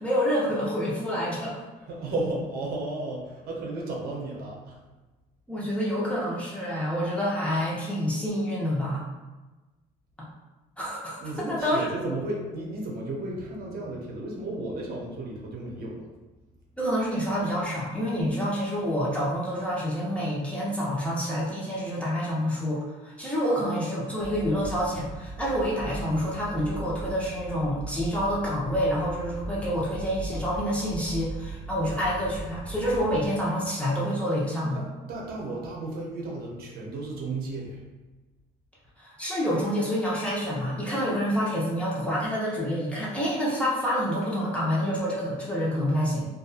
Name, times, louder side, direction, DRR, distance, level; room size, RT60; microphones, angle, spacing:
voice 1, 0.0-1.6 5.5-9.0 10.8-11.9 16.8-34.8 39.0-46.2, equal, 5° left, -7 dB, 0.7 m, -28 dB
voice 2, 1.8-4.8 11.2-16.1 34.7-37.8, right 2 dB, 65° right, -2 dB, 0.7 m, -34 dB
sound 1, 24.2-33.3, right 2 dB, 25° left, 1.1 m, -39 dB
2.5 x 2.4 x 2.4 m, 1.2 s
cardioid pair, 110°, 17 cm